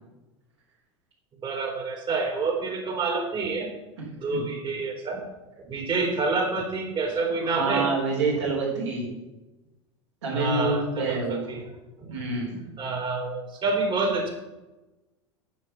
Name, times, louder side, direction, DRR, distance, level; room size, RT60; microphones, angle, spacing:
voice 1, 1.4-3.7 4.2-5.2 5.6-7.9 10.3-11.6 12.0-12.1 12.8-14.3, right 3 dB, 30° right, 1 dB, 3.9 m, -28 dB
voice 2, 7.5-9.1 10.2-11.5 12.1-12.6, right 3 dB, 75° right, -7 dB, 4.1 m, -27 dB
9.5 x 8.6 x 6.0 m, 1.1 s
hypercardioid pair, 85°, 16 cm